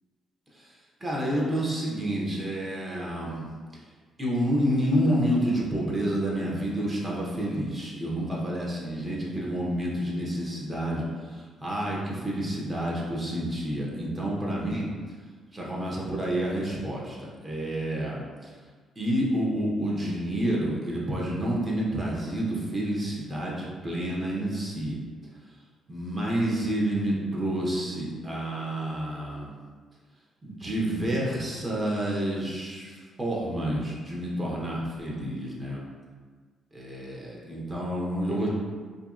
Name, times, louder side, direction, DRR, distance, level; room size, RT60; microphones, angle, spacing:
voice 1, 1.0-3.5 4.2-14.9 15.5-18.5 19.0-25.0 25.9-29.6 30.4-35.8 36.7-38.5, right 1 dB, 25° right, -4 dB, 0.7 m, -29 dB
2.9 x 2.6 x 2.4 m, 1.5 s
cardioid pair, 90°, 0 cm